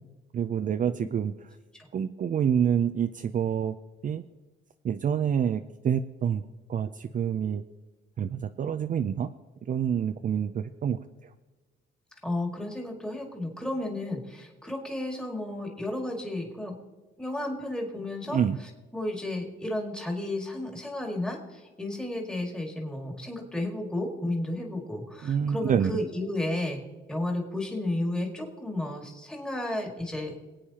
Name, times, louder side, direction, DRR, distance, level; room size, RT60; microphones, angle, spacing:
voice 1, 0.3-1.3 1.9-3.8 4.0-4.2 4.8-6.4 6.7-7.6 8.2-9.3 9.7-11.0 18.3-18.6 25.2-26.0, right 8 dB, 40° right, 8 dB, 0.4 m, -27 dB
voice 2, 12.2-16.7 17.2-18.4 18.9-26.8 27.1-30.4, left 1 dB, 5° left, 0 dB, 2.0 m, -32 dB
24.5 x 8.6 x 2.9 m, 1.2 s
cardioid pair, 90°, 20 cm